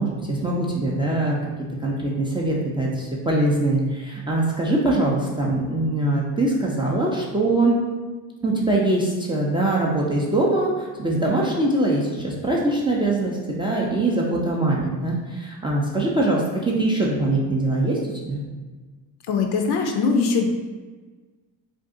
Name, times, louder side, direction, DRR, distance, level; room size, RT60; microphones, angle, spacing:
voice 1, 0.0-1.4 1.8-7.8 8.4-18.0 18.2-18.4, right 2 dB, 10° right, -4 dB, 0.4 m, -22 dB
voice 2, 19.3-20.5, left 4 dB, 55° left, 3 dB, 0.5 m, -21 dB
2.6 x 2.4 x 3.6 m, 1.3 s
supercardioid pair, 80°, 48 cm